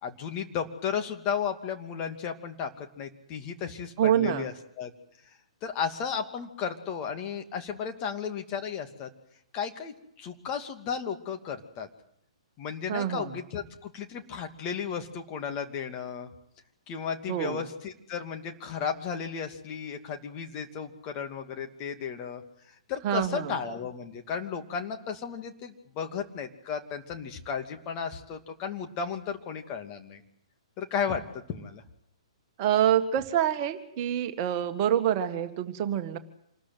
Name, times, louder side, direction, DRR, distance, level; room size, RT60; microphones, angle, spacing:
voice 1, 0.0-4.9 5.6-9.1 9.5-11.9 12.6-16.3 16.9-22.4 22.9-30.2 30.8-31.8, left 7 dB, 30° left, 4 dB, 2.6 m, -34 dB
voice 2, 4.0-4.5 12.9-13.3 17.3-17.6 23.0-23.6 32.6-36.2, right 10 dB, 35° right, 7 dB, 1.8 m, -26 dB
27.0 x 20.5 x 7.9 m, 0.73 s
figure-of-eight pair, 120°, 3 cm